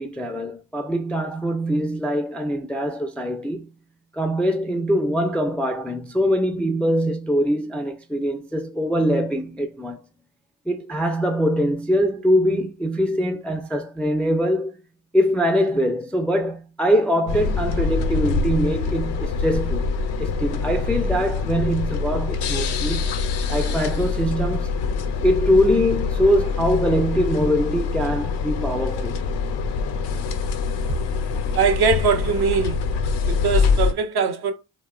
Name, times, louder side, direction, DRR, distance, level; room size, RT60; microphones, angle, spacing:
voice 1, 0.0-3.7 4.1-10.0 10.7-14.7 15.1-19.9 20.2-23.1 23.5-24.7 25.2-29.2, equal, 5° left, 0.3 m, -23 dB
sound 1, 17.3-33.9, left 5 dB, 80° left, 0.5 m, -24 dB
voice 2, 31.5-32.8 33.2-34.5, right 5 dB, 70° right, 0.7 m, -21 dB
2.8 x 2.1 x 2.3 m
supercardioid pair, 50°, 40 cm